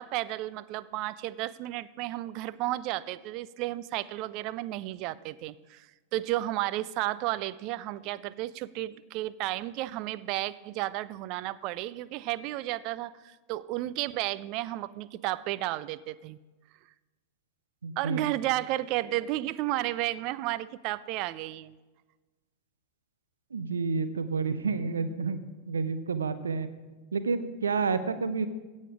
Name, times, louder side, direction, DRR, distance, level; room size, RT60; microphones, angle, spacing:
voice 1, 0.0-16.4 18.0-21.8, right 16 dB, 40° right, 18 dB, 0.4 m, -33 dB
voice 2, 17.8-18.3 23.5-25.4 25.7-26.7 27.1-28.5, right 4 dB, 70° right, 11 dB, 0.7 m, -29 dB
16.5 x 6.4 x 4.9 m, 1.2 s
figure-of-eight pair, 90°, 0 cm